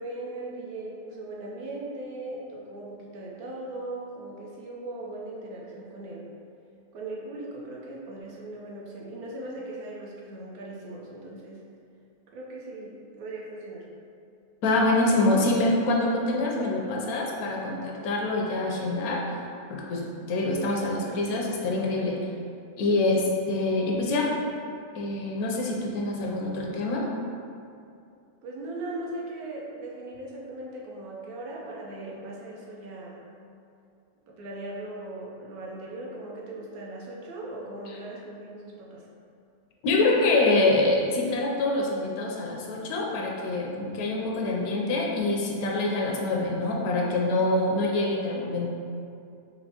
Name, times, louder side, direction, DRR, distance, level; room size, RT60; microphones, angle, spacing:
voice 1, 0.0-6.3 6.9-11.6 12.3-13.9 23.7-23.8 28.4-33.2 34.3-39.1, right 2 dB, 85° right, -3 dB, 1.2 m, -39 dB
voice 2, 14.6-19.2 19.7-22.2 22.8-24.3 24.9-27.1 39.8-48.7, left 2 dB, 80° left, -2 dB, 1.1 m, -25 dB
4.4 x 2.6 x 2.8 m, 2.5 s
omnidirectional pair, 1.6 m